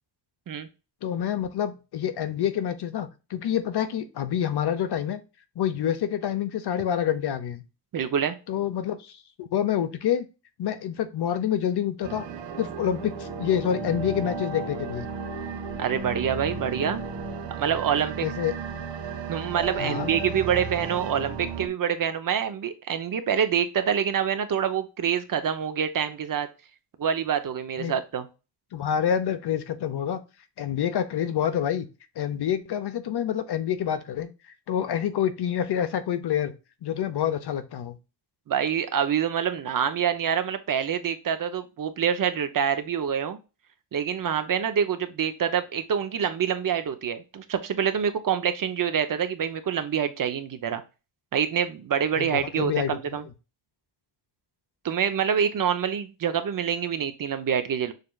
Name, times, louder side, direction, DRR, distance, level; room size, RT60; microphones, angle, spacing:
voice 1, 1.0-5.2 5.6-7.6 8.5-10.3 10.6-12.2 12.6-15.1 18.2-18.5 19.8-20.1 27.8-27.9 28.7-30.2 30.6-31.9 32.2-34.3 34.7-36.5 36.8-38.0 52.2-53.2, left 9 dB, 65° left, 10 dB, 0.9 m, -27 dB
voice 2, 7.9-8.4 15.8-17.0 17.6-18.3 19.3-26.5 27.0-28.3 38.5-43.4 43.9-50.8 51.3-53.2 54.8-57.9, right 8 dB, 50° right, 10 dB, 0.7 m, -26 dB
sound 1, 12.0-21.7, right 4 dB, 85° right, 1.0 m, -34 dB
6.6 x 3.2 x 2.3 m, 0.29 s
wide cardioid pair, 130°, 43 cm